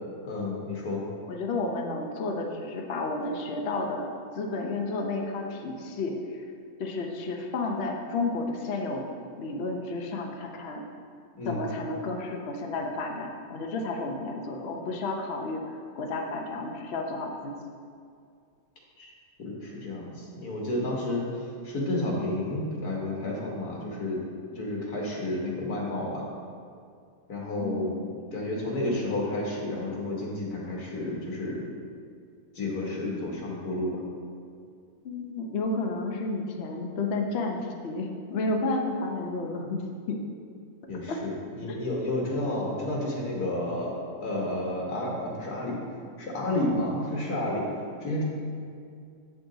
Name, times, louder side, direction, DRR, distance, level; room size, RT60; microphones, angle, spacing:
voice 1, 0.2-1.1 11.4-11.6 19.0-19.1 19.4-21.3 21.6-24.2 24.6-26.3 27.3-27.9 28.3-31.6 32.6-34.0 40.9-45.8 46.2-47.7 48.0-48.2, left 1 dB, 90° left, -2 dB, 2.0 m, -31 dB
voice 2, 1.3-4.1 4.4-6.4 6.8-9.1 9.4-10.8 11.4-15.6 16.0-17.5 27.6-28.0 35.0-39.8 40.1-40.2 41.1-41.2 41.7-41.9, left 2 dB, 50° left, 2 dB, 0.9 m, -31 dB
7.7 x 7.1 x 3.9 m, 2.3 s
omnidirectional pair, 1.6 m